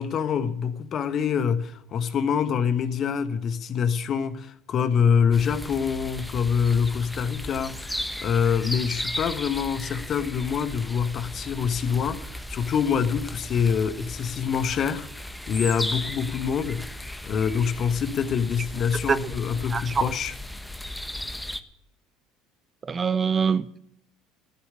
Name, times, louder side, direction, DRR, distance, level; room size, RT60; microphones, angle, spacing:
voice 1, 0.0-20.3, left 7 dB, 45° left, 1.4 m, -25 dB
sound 1, 5.3-21.6, left 1 dB, 5° left, 1.2 m, -36 dB
voice 2, 19.7-20.0 22.9-23.8, right 6 dB, 30° right, 0.7 m, -24 dB
14.0 x 8.2 x 9.6 m
hypercardioid pair, 70°, 0 cm